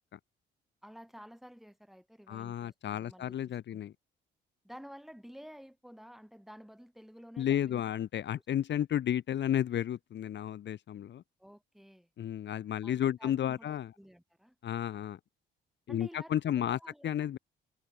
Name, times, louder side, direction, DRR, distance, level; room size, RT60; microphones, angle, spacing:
voice 1, 0.8-3.8 4.6-7.8 11.4-12.1 12.8-14.5 15.9-17.3, equal, ahead, 6.1 m, -52 dB
voice 2, 2.3-3.9 7.4-11.2 12.2-13.9 14.6-15.2 15.9-17.4, left 10 dB, 65° left, 1.5 m, -32 dB
cardioid pair, 90°, 20 cm